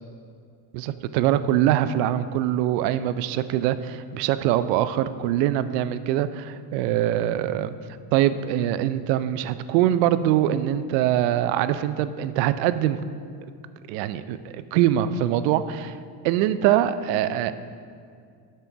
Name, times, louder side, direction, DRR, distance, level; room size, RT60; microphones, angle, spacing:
voice 1, 0.7-7.7 8.1-13.0 13.9-16.0 16.2-17.5, right 12 dB, 80° right, 13 dB, 0.6 m, -23 dB
8.8 x 4.4 x 6.1 m, 2.3 s
supercardioid pair, 75°, 49 cm